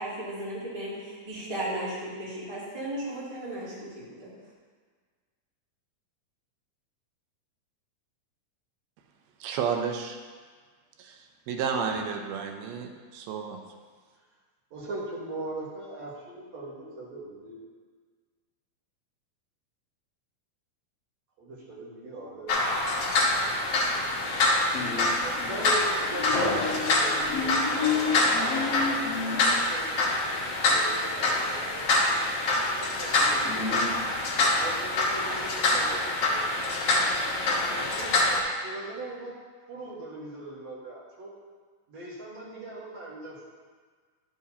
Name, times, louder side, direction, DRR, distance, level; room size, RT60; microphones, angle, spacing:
voice 1, 0.0-4.3, right 1 dB, 10° right, -10 dB, 2.0 m, -35 dB
voice 2, 9.4-10.2 11.5-13.7, right 6 dB, 90° right, 4 dB, 2.6 m, -31 dB
voice 3, 14.7-17.6 21.4-22.5 25.1-29.9 30.4-31.5 32.7-33.8 34.5-36.6 37.6-38.1 38.6-39.3 39.7-41.3 41.9-43.4, right 2 dB, 55° right, -5 dB, 2.4 m, -40 dB
sound 1, 22.5-38.4, left 2 dB, 60° left, 1.7 m, -25 dB
10.5 x 7.1 x 2.8 m, 1.5 s
omnidirectional pair, 4.2 m